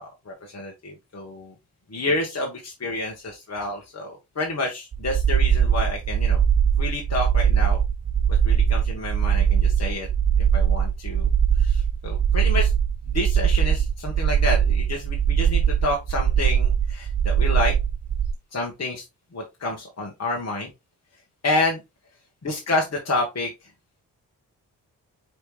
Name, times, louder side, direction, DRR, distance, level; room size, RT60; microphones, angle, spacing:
voice 1, 0.0-1.5 1.9-6.4 6.8-7.8 8.4-10.1 10.5-11.3 11.6-12.7 13.1-17.7 18.5-19.0 19.3-20.7 21.4-21.8 22.4-23.5, left 2 dB, 35° left, 0 dB, 1.4 m, -29 dB
sound 1, 4.9-18.3, right 8 dB, 30° right, 0.6 m, -21 dB
4.9 x 3.3 x 3.2 m, 0.23 s
supercardioid pair, 45°, 42 cm